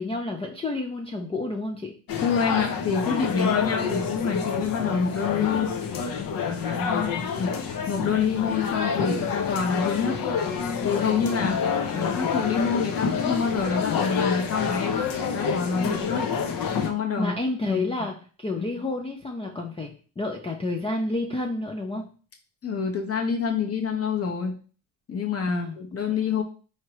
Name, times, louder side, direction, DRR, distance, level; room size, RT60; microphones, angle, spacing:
voice 1, 0.0-2.0 6.5-7.2 15.8-16.0 17.2-22.1 25.5-25.8 26.1-26.2, left 2 dB, 15° left, 2 dB, 0.4 m, -30 dB
sound 1, 2.1-16.9, left 6 dB, 50° left, 0.8 m, -27 dB
voice 2, 2.2-5.7 6.7-10.2 10.8-11.6 11.9-15.0 15.3-16.2 16.8-17.3 17.7-17.8 18.6-18.7 22.6-24.5 25.1-26.4, left 6 dB, 30° left, 2 dB, 1.1 m, -27 dB
4.7 x 2.8 x 3.0 m, 0.39 s
supercardioid pair, 80°, 45 cm